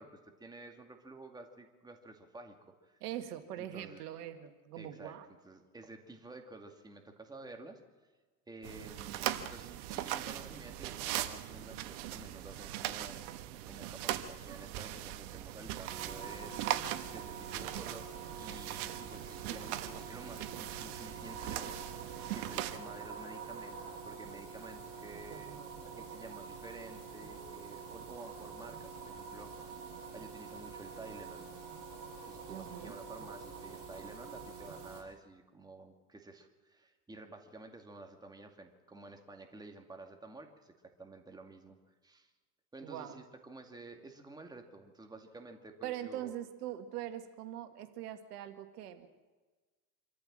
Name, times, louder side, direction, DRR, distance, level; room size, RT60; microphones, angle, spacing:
voice 1, 0.0-2.6 2.8-3.0 3.6-4.0 4.8-7.8 8.5-13.3 13.7-25.6 25.9-29.8 30.1-31.5 32.2-41.8 42.0-42.3 42.7-46.3, right 2 dB, 10° right, 4 dB, 2.3 m, -51 dB
voice 2, 3.0-5.3 19.5-19.8 25.3-26.0 32.5-32.9 42.8-43.2 45.8-49.1, right 12 dB, 85° right, 8 dB, 2.0 m, -43 dB
sound 1, 8.6-22.8, right 13 dB, 65° right, 1.5 m, -40 dB
sound 2, 15.9-35.0, right 5 dB, 45° right, 6.9 m, -46 dB
26.0 x 14.0 x 7.6 m, 1.3 s
supercardioid pair, 125°, 45 cm